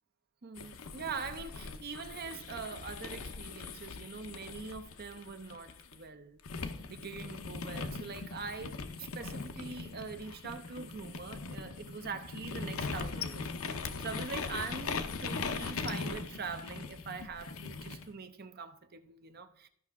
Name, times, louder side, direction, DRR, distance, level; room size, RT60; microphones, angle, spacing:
voice 1, 0.4-19.7, right 5 dB, 45° right, 0.6 m, -43 dB
sound 1, 0.6-6.0 6.4-18.1, left 4 dB, 75° left, 0.8 m, -40 dB
14.0 x 5.7 x 3.6 m
head